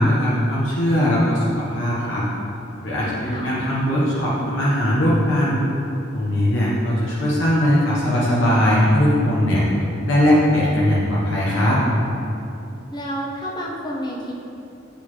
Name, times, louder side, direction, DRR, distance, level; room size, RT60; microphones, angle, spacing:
voice 1, 0.0-2.3 2.8-5.6 6.1-9.6 10.1-11.8, equal, 75° left, -7 dB, 1.0 m, -19 dB
voice 2, 12.9-14.3, equal, 20° left, -3 dB, 0.8 m, -29 dB
8.5 x 4.0 x 3.1 m, 2.7 s
head